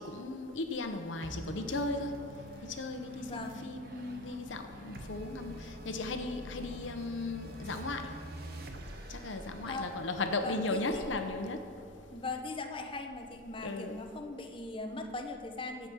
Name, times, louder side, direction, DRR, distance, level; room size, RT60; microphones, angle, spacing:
voice 1, 0.0-2.1 2.6-8.1 9.1-11.6 13.6-14.0, left 2 dB, 85° left, 6 dB, 0.9 m, -36 dB
sound 1, 1.2-12.0, right 1 dB, 55° right, 1.0 m, -47 dB
voice 2, 3.2-3.7 9.7-9.9 10.4-11.0 12.1-15.9, left 3 dB, 30° left, 5 dB, 0.8 m, -40 dB
15.5 x 5.2 x 6.1 m, 2.4 s
head